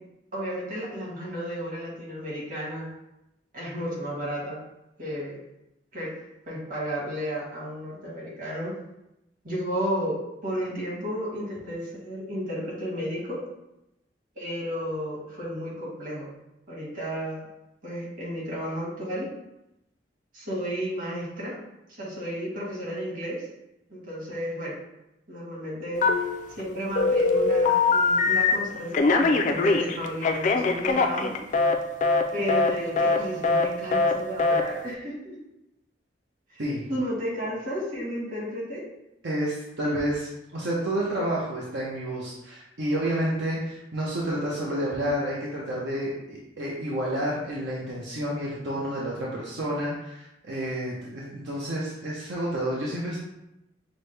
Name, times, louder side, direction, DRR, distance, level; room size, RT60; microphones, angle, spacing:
voice 1, 0.3-2.9 3.5-4.6 5.0-5.4 5.9-6.1 6.5-8.7 9.4-10.2 10.4-13.4 14.3-16.3 16.7-17.4 17.8-19.3 20.3-21.6 21.9-23.5 23.9-24.7 25.3-26.0 26.6-31.4 32.3-35.4 36.5-36.6 36.9-38.8, equal, 50° right, -5 dB, 1.5 m, -32 dB
Telephone, 26.0-26.6 26.9-28.6 28.9-31.7 32.0-32.2 32.5-32.7 33.0-33.2 33.4-33.6 33.9-34.1 34.4-34.6, left 4 dB, 45° left, 0.3 m, -22 dB
voice 2, 39.2-53.2, right 1 dB, 80° right, -5 dB, 0.7 m, -30 dB
6.1 x 2.1 x 3.3 m, 0.89 s
head